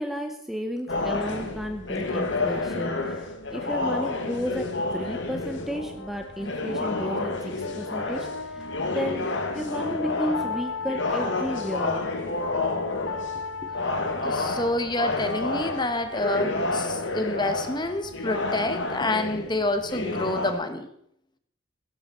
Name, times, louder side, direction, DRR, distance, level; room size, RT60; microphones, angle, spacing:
voice 1, 0.0-8.7 8.9-12.1, equal, ahead, 5 dB, 0.9 m, -33 dB
sound 1, 0.9-20.5, left 2 dB, 60° left, 2.0 m, -30 dB
sound 2, 3.2-20.7, left 5 dB, 75° left, 0.8 m, -39 dB
voice 2, 14.2-20.9, left 2 dB, 20° left, 8 dB, 1.2 m, -28 dB
16.0 x 13.0 x 4.4 m, 0.72 s
head